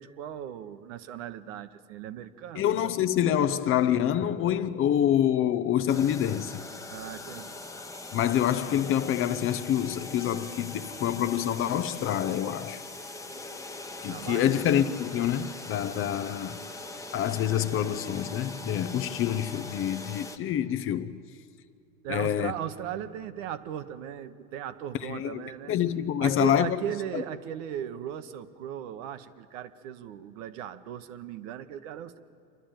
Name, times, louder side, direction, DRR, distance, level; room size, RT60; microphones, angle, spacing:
voice 1, 0.0-2.6 6.9-7.6 14.1-14.7 22.0-25.7 26.2-32.2, right 10 dB, 60° right, 1.1 m, -37 dB
voice 2, 2.5-6.6 8.1-12.8 14.0-16.6 17.1-21.1 22.1-22.5 25.0-26.8 27.1-27.2, left 10 dB, 30° left, 0.6 m, -26 dB
sound 1, 5.9-20.4, left 3 dB, 5° left, 1.0 m, -41 dB
27.5 x 11.0 x 9.0 m
hypercardioid pair, 105°, 42 cm